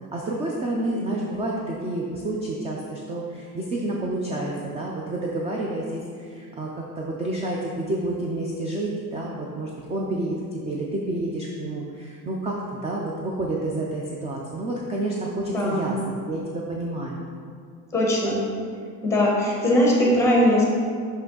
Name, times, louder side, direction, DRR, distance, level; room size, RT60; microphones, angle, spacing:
voice 1, 0.1-16.0 16.3-17.3, right 2 dB, 20° right, -2 dB, 0.4 m, -29 dB
voice 2, 15.5-15.9 17.9-18.4 19.0-20.7, left 1 dB, 10° left, -3 dB, 1.0 m, -20 dB
5.7 x 5.5 x 3.8 m, 2.2 s
cardioid pair, 175°, 35 cm